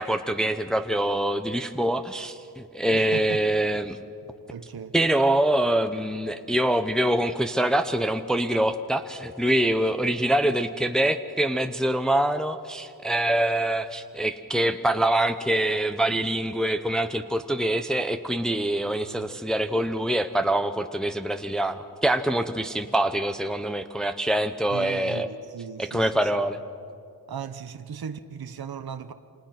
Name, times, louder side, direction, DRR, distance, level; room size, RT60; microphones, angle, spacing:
voice 1, 0.0-4.0 4.9-25.3 25.8-26.6, right 1 dB, ahead, 0.8 m, -25 dB
voice 2, 2.9-3.4 4.5-4.9 18.9-19.3 24.7-26.3 27.3-29.1, right 7 dB, 65° right, 0.9 m, -37 dB
28.5 x 26.5 x 5.9 m
wide cardioid pair, 95°, 39 cm